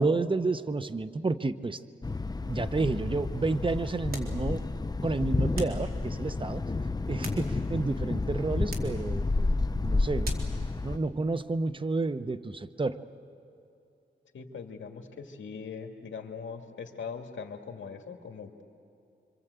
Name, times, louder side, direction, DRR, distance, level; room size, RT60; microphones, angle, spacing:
voice 1, 0.0-1.8 2.4-4.6 5.0-6.6 7.1-9.5 9.8-10.5 10.8-13.0, right 3 dB, 25° right, 11 dB, 0.8 m, -30 dB
Thunder, 2.0-11.0, left 3 dB, 20° left, 0.7 m, -30 dB
sound 1, 4.1-4.4 5.5-5.9 6.9-7.8 8.7-9.0 10.2-10.6, right 2 dB, 50° right, 3.4 m, -42 dB
voice 2, 14.3-18.6, left 5 dB, 75° left, 4 dB, 2.1 m, -41 dB
26.5 x 25.0 x 8.2 m, 2.6 s
wide cardioid pair, 90°, 20 cm